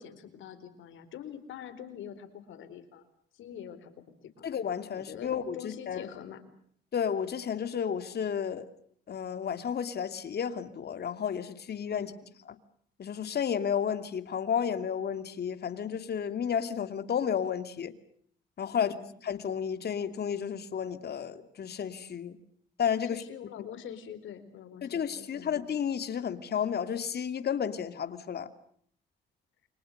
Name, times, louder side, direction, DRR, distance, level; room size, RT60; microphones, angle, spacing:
voice 1, 0.0-3.0 3.3-3.9 4.2-4.5 4.9-6.4 11.9-12.3 18.7-19.1 23.0-25.6, left 9 dB, 80° left, 10 dB, 4.4 m, -45 dB
voice 2, 4.4-6.1 6.9-8.7 9.1-12.1 13.0-17.9 18.6-18.9 19.2-22.4 22.8-23.2 24.8-28.5, left 8 dB, 55° left, 10 dB, 2.7 m, -32 dB
29.0 x 25.0 x 6.7 m, 0.62 s
cardioid pair, 90°, 20 cm